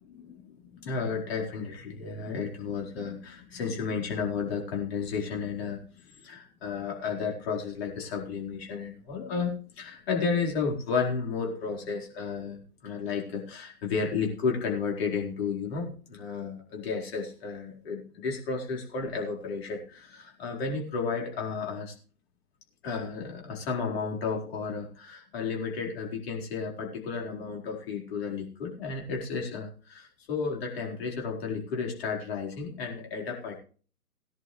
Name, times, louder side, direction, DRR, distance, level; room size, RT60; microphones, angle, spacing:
voice 1, 0.1-21.9 22.8-33.6, left 5 dB, 40° left, -1 dB, 4.4 m, -33 dB
18.0 x 10.5 x 3.2 m, 0.40 s
figure-of-eight pair, 130°, 45 cm